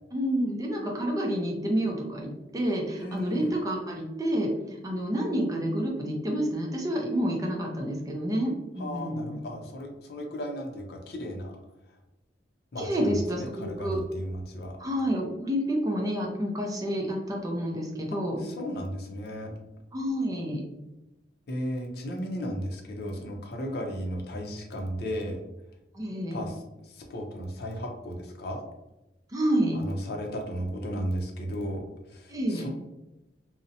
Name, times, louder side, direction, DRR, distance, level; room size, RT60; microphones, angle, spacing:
voice 1, 0.1-9.4 12.8-14.0 14.8-18.4 19.9-20.6 25.9-26.4 29.3-29.8 32.3-32.7, equal, 20° right, 0 dB, 0.4 m, -29 dB
voice 2, 3.0-3.5 8.8-11.6 11.9-12.0 12.7-14.8 18.4-19.5 21.5-25.4 26.3-28.6 29.7-32.7, equal, 60° left, 2 dB, 0.5 m, -35 dB
2.6 x 2.0 x 2.6 m, 0.96 s
head